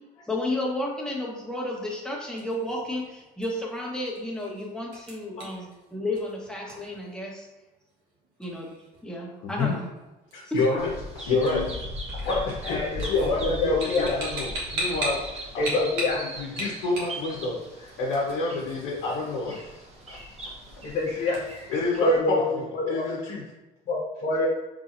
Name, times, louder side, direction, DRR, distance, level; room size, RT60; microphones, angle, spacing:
voice 1, 0.3-7.5 8.4-8.7 9.0-9.9 10.4-10.6, left 1 dB, 5° left, -3 dB, 1.0 m, -32 dB
sound 1, 2.1-21.7, right 1 dB, 80° right, 1.2 m, -40 dB
voice 2, 10.3-10.9 11.1-11.6 12.2-15.8 16.3-19.8 20.1-20.2 21.1-21.2 21.7-23.4, left 3 dB, 85° left, -4 dB, 0.8 m, -28 dB
Bird vocalization bird call bird song, 10.8-22.2, equal, 35° right, 1.0 m, -39 dB
voice 3, 12.6-14.1 15.6-16.2 20.8-21.4 22.0-22.4 22.7-23.1 23.9-24.5, left 3 dB, 50° left, -5 dB, 0.7 m, -27 dB
3.9 x 3.2 x 2.5 m, 1.0 s
supercardioid pair, 90°, 18 cm